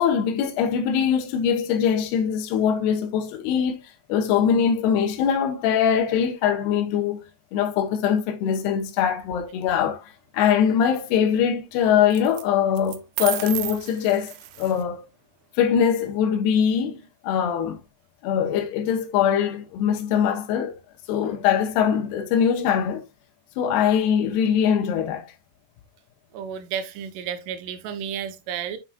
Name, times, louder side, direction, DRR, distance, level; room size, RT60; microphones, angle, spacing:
voice 1, 0.0-7.2 7.5-15.0 15.6-17.8 18.2-20.7 21.1-23.0 23.6-25.3, left 8 dB, 80° left, 3.0 m, -22 dB
sound 1, 9.2-9.8 12.1-12.4 12.8-14.8, right 15 dB, 85° right, 2.0 m, -33 dB
voice 2, 26.3-28.8, right 8 dB, 70° right, 2.1 m, -32 dB
8.0 x 6.0 x 2.4 m
omnidirectional pair, 4.8 m